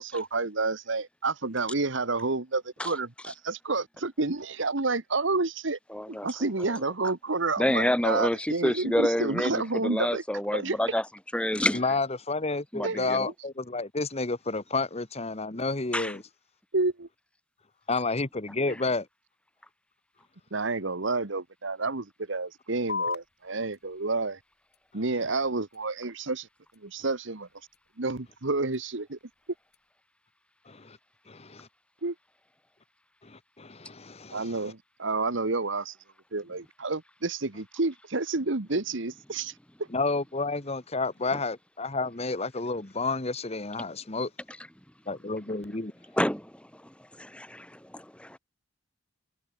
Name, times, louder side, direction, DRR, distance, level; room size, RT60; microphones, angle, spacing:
voice 1, 0.0-5.8 6.1-10.2 10.5-10.8 12.8-13.1 16.7-17.1 20.5-24.4 24.9-26.5 26.8-27.5 28.0-29.2 32.0-32.1 34.3-35.9 36.3-39.5 39.8-39.9, right 3 dB, 65° right, 1.4 m, -29 dB
voice 2, 5.9-6.8 7.6-11.1 11.3-11.8 12.7-13.3 15.9-16.2 18.7-18.8 46.1-48.4, left 1 dB, 5° left, 2.2 m, -29 dB
voice 3, 11.7-16.2 17.9-19.1 30.7-31.0 31.3-31.7 33.2-34.7 39.9-44.3 45.1-45.9, left 3 dB, 30° left, 1.3 m, -30 dB
sound 1, 22.9-29.9, left 5 dB, 50° left, 5.3 m, -42 dB
head